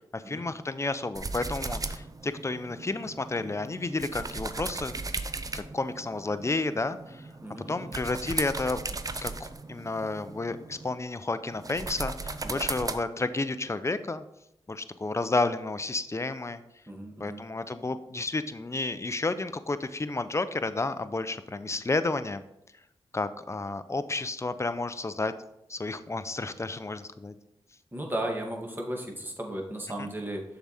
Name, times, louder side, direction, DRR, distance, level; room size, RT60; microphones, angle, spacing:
voice 1, 0.1-5.0 5.5-7.3 7.7-8.8 9.1-14.2 14.7-16.6 17.2-22.4 23.1-25.3 25.7-27.3 30.0-30.1, left 3 dB, 25° left, 12 dB, 0.6 m, -31 dB
sound 1, 1.1-11.0 11.5-13.0, right 3 dB, 35° right, 0.6 m, -37 dB
voice 2, 7.4-8.1 12.4-12.6 16.9-17.4 27.9-30.4, right 1 dB, 20° right, 0 dB, 1.9 m, -35 dB
6.8 x 4.9 x 4.2 m, 0.83 s
cardioid pair, 45°, 11 cm